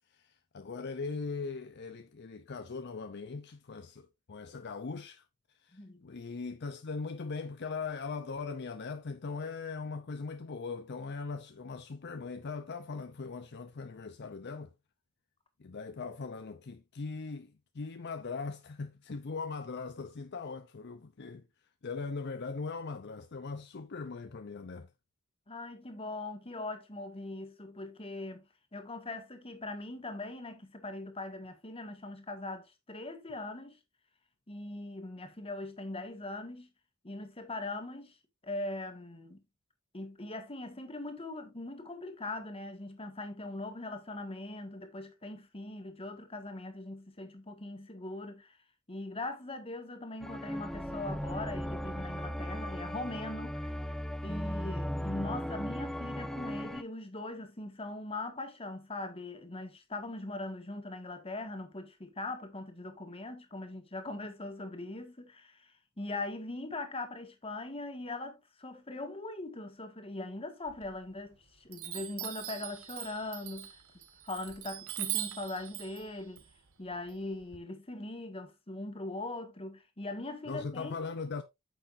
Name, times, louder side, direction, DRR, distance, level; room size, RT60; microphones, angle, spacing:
voice 1, 0.1-5.2 5.6-14.7 15.6-21.4 21.8-24.9 80.5-81.4, left 4 dB, 50° left, 0.6 m, -40 dB
voice 2, 5.7-6.0 25.5-28.4 28.7-33.8 34.5-36.7 37.0-38.2 38.4-39.4 39.9-48.6 48.9-54.0 54.2-73.8 74.2-76.4 76.8-81.0, left 2 dB, 25° left, 1.7 m, -41 dB
sound 1, 50.2-56.8, equal, ahead, 0.4 m, -37 dB
Chime, 70.7-71.3 71.7-77.6, right 13 dB, 75° right, 1.3 m, -41 dB
9.1 x 6.7 x 2.6 m
head